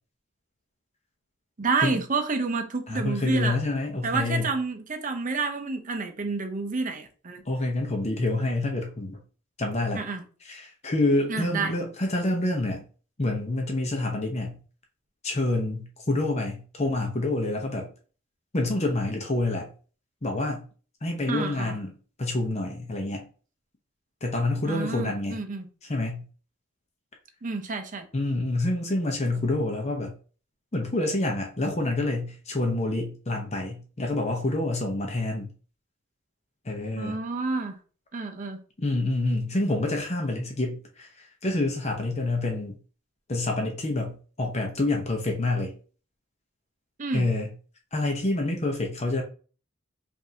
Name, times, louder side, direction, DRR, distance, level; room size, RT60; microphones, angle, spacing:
voice 1, 1.6-3.6 4.0-7.4 9.9-10.2 11.3-11.8 21.3-21.8 24.7-25.7 27.4-28.1 37.0-37.7 38.1-38.6 47.0-47.3, right 4 dB, 40° right, 0.6 m, -29 dB
voice 2, 2.9-4.5 7.5-9.2 9.6-10.0 10.4-12.8 13.2-14.6 15.2-17.9 18.5-19.7 20.2-20.6 21.0-21.9 22.2-23.3 24.2-25.4 25.9-26.2 28.1-30.1 30.7-35.5 36.7-37.2 38.8-41.1 41.4-42.8 43.3-45.7 47.1-47.5 47.9-49.2, left 2 dB, 35° left, 0.7 m, -27 dB
5.2 x 2.6 x 2.8 m
head